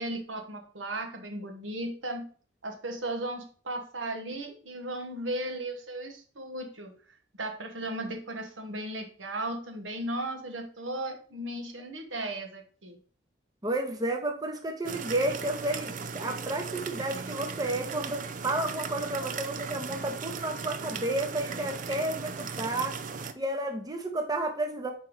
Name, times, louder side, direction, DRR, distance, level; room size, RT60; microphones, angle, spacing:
voice 1, 0.0-2.3 2.6-6.9 7.4-13.0, right 1 dB, 90° right, 4 dB, 1.3 m, -36 dB
voice 2, 13.6-23.0 23.4-24.9, right 1 dB, 20° right, 4 dB, 0.8 m, -31 dB
sound 1, 14.8-23.3, right 5 dB, 45° right, 0.5 m, -37 dB
5.1 x 4.6 x 4.8 m, 0.42 s
head